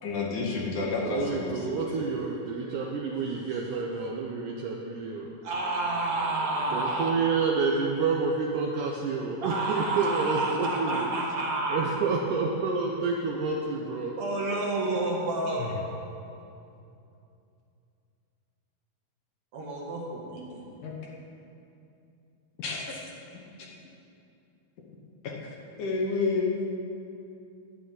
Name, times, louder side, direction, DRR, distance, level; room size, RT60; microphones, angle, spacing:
voice 1, 0.0-1.9 15.6-15.7 20.8-20.9 22.6-23.0 23.3-23.4 25.2-26.5, left 4 dB, 65° left, -1 dB, 2.3 m, -30 dB
voice 2, 1.0-5.4 6.7-11.1 11.7-14.2, right 4 dB, 75° right, 0 dB, 1.9 m, -29 dB
voice 3, 5.4-7.1 9.4-11.9 14.2-15.7 19.5-20.8, right 2 dB, 55° right, -3 dB, 2.4 m, -29 dB
11.5 x 6.7 x 9.2 m, 2.6 s
omnidirectional pair, 4.3 m